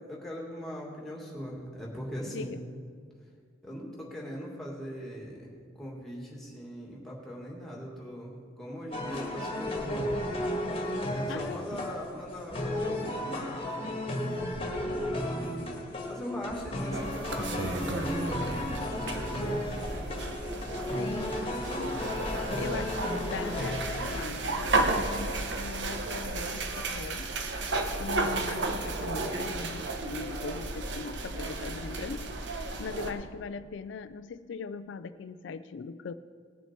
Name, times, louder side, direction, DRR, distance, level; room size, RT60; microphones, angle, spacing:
voice 1, 0.1-2.5 3.6-10.3 11.1-14.8 16.1-19.8 20.9-21.8, equal, ahead, -3 dB, 2.3 m, -40 dB
voice 2, 2.2-2.6 11.3-11.9 20.9-21.4 21.8-22.0 22.6-27.3 28.0-32.3 32.8-36.1, left 5 dB, 80° left, 12 dB, 0.4 m, -40 dB
sound 1, 8.9-24.3, left 1 dB, 30° left, 1.5 m, -34 dB
sound 2, 16.9-33.1, right 2 dB, 75° right, 1.1 m, -33 dB
19.0 x 7.1 x 4.5 m, 2.1 s
head